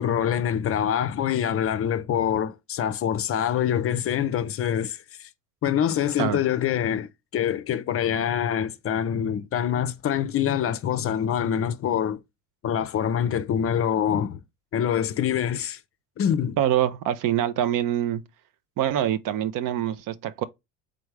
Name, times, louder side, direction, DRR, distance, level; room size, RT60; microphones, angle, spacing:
voice 1, 0.0-5.3 5.6-12.2 12.6-14.4 14.7-15.8 16.2-16.6, left 9 dB, 35° left, 0.5 m, -25 dB
voice 2, 16.6-18.2 18.8-20.4, right 11 dB, 55° right, 0.6 m, -25 dB
3.8 x 3.4 x 3.2 m
hypercardioid pair, 75°, 40 cm